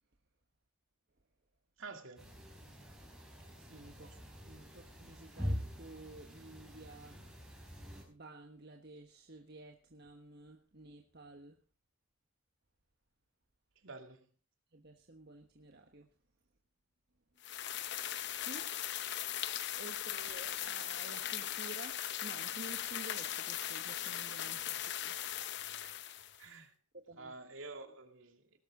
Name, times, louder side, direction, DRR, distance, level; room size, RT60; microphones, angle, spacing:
voice 1, 1.8-2.3 4.0-4.1 13.8-14.2 25.8-26.0 26.4-26.7 27.2-28.6, right 3 dB, 65° right, 2.4 m, -49 dB
sound 1, 2.2-8.0, equal, 5° right, 5.4 m, -44 dB
voice 2, 3.6-4.2 4.4-7.5 8.1-11.6 14.7-16.1 18.4-18.7 19.2-25.9 26.9-27.3, right 2 dB, 50° right, 1.4 m, -53 dB
sound 2, 17.4-26.4, left 11 dB, 55° left, 0.8 m, -39 dB
19.0 x 12.0 x 3.8 m
head